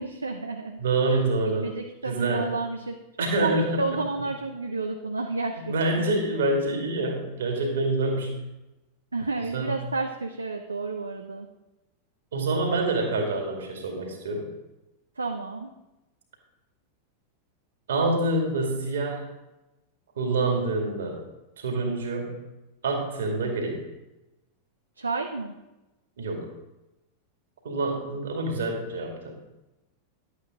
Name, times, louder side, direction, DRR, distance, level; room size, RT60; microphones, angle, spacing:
voice 1, 0.0-0.8 1.1-3.0 3.4-6.0 9.1-11.5 15.2-15.7 25.0-25.5, right 3 dB, 80° right, 4 dB, 0.6 m, -31 dB
voice 2, 0.8-1.7 2.0-2.5 3.2-4.0 5.5-8.4 9.5-9.8 12.3-14.5 17.9-19.3 20.2-21.2 21.6-22.4 22.8-23.8 26.2-26.5 27.6-29.4, right 2 dB, 65° right, 1 dB, 2.3 m, -26 dB
11.0 x 8.3 x 3.7 m, 0.99 s
figure-of-eight pair, 90°, 0 cm